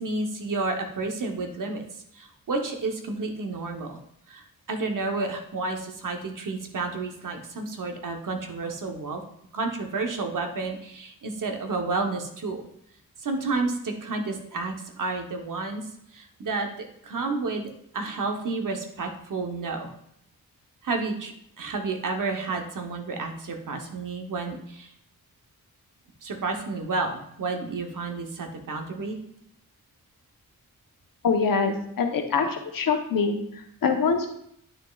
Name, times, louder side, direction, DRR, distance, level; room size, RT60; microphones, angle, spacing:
voice 1, 0.0-1.8 2.1-4.0 4.3-9.2 9.5-12.6 13.2-15.8 16.1-16.7 17.0-19.9 20.8-24.9 26.2-29.2, right 3 dB, 65° right, 4 dB, 0.9 m, -31 dB
voice 2, 31.2-34.3, left 5 dB, 70° left, 5 dB, 0.9 m, -24 dB
9.6 x 6.3 x 2.3 m, 0.72 s
wide cardioid pair, 175°, 35 cm